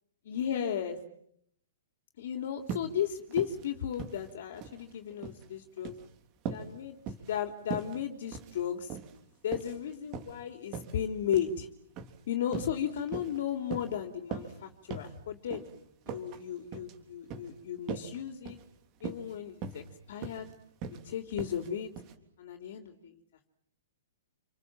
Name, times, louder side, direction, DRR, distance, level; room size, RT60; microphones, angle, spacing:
voice 1, 0.3-1.0 2.2-5.9 6.5-7.0 7.3-9.0 9.4-11.7 12.3-15.6 16.1-18.6 19.0-20.5 21.0-21.9 22.4-23.1, left 9 dB, 55° left, 5 dB, 3.5 m, -35 dB
sound 1, 2.7-2.9 3.3-3.6 3.9-4.8 5.1-5.4 5.8-6.1 6.5-6.7 7.1-7.4 7.7-8.0 8.3-8.6 8.9-9.2 9.5-10.4 10.7-10.9 11.3-11.5 12.0-12.2 12.5-12.8 13.1-13.4 13.7-13.9 14.3-14.6 14.9-15.1 15.5-15.7 16.1-16.4 16.7-16.9 17.3-17.5 17.9-18.2 18.5-18.6 19.0-19.3 19.6-19.9 20.2-20.5 20.8-21.0 21.4-21.7 22.0-22.1, right 7 dB, 25° right, 3.4 m, -40 dB
29.0 x 26.5 x 7.6 m, 0.71 s
hypercardioid pair, 160°, 0 cm